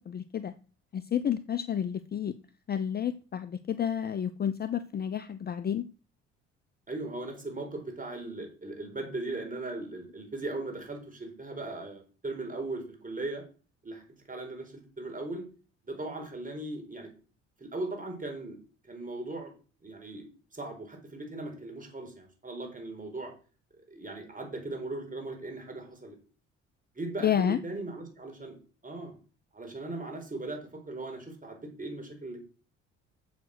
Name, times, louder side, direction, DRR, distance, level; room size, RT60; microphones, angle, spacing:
voice 1, 0.1-0.5 0.9-2.3 2.7-5.9 27.2-27.6, left 9 dB, 25° left, 12 dB, 0.6 m, -30 dB
voice 2, 6.9-13.4 13.8-14.0 14.3-15.4 15.8-17.1 17.6-18.6 18.9-19.5 19.8-20.3 20.5-23.3 23.9-26.2 26.9-28.6 28.8-29.1 29.5-32.4, right 2 dB, 20° right, 3 dB, 4.7 m, -38 dB
7.5 x 7.3 x 6.2 m, 0.37 s
figure-of-eight pair, 55°, 38 cm